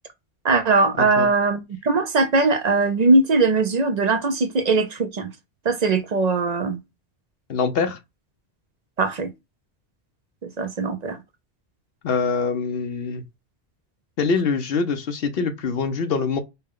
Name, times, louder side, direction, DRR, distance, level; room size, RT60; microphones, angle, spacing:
voice 1, 0.4-5.3 5.6-6.8 9.0-9.3 10.4-11.2, right 3 dB, 50° right, 0.5 m, -20 dB
voice 2, 7.5-8.0 12.0-13.2 14.2-16.4, left 5 dB, 65° left, 0.9 m, -24 dB
5.5 x 2.2 x 3.6 m
omnidirectional pair, 1.1 m